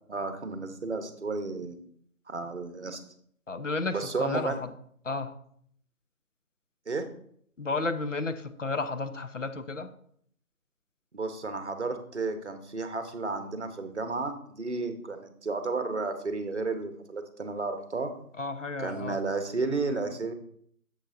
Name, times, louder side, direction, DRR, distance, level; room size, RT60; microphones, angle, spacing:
voice 1, 0.1-1.8 2.3-3.0 3.9-4.6 6.9-7.0 11.1-18.1 18.8-20.3, right 3 dB, 50° right, 8 dB, 1.0 m, -32 dB
voice 2, 3.5-4.7 5.0-5.3 7.6-9.9 18.4-19.2, left 3 dB, 55° left, 9 dB, 0.8 m, -32 dB
10.0 x 7.3 x 2.6 m, 0.64 s
figure-of-eight pair, 160°, 45 cm